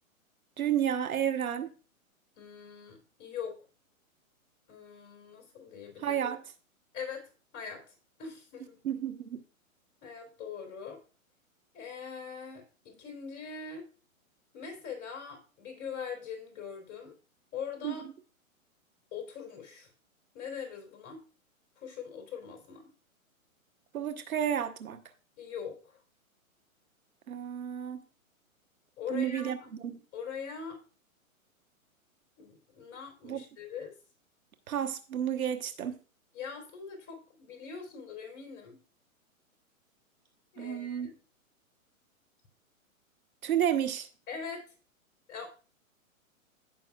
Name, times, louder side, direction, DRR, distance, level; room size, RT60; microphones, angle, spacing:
voice 1, 0.6-1.7 6.0-6.4 8.8-9.4 17.8-17.9 23.9-25.0 27.3-28.0 29.1-30.0 33.2-33.4 34.7-36.0 40.6-41.1 43.4-44.1, right 9 dB, 80° right, 1.2 m, -31 dB
voice 2, 2.4-3.6 4.7-6.3 6.9-8.8 10.0-11.0 11.7-13.8 14.5-17.1 17.5-18.0 19.1-19.9 20.3-21.2 21.8-22.9 25.4-26.0 29.0-29.7 30.1-30.8 32.4-33.9 36.3-38.8 40.5-41.2 44.3-44.6 45.3-45.5, left 6 dB, 25° left, 3.4 m, -42 dB
16.0 x 5.9 x 2.3 m
hypercardioid pair, 140°, 42 cm